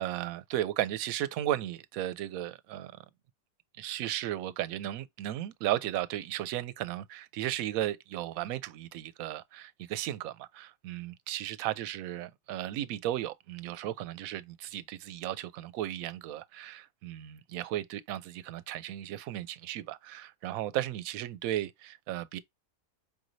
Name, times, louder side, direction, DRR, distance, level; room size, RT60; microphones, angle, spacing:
voice 1, 0.0-2.9 3.8-22.4, right 13 dB, 80° right, 1.0 m, -35 dB
5.2 x 3.0 x 2.6 m
omnidirectional pair, 1.5 m